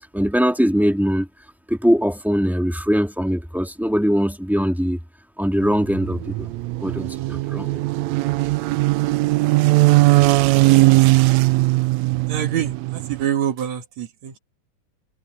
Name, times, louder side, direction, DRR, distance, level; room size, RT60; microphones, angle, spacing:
voice 1, 0.1-1.3 1.7-5.0 5.4-6.5 6.8-7.8, equal, ahead, 0.8 m, -21 dB
sound 1, 5.6-13.3, right 20 dB, 85° right, 1.6 m, -19 dB
voice 2, 12.3-14.4, right 10 dB, 65° right, 2.5 m, -26 dB
omnidirectional pair, 3.7 m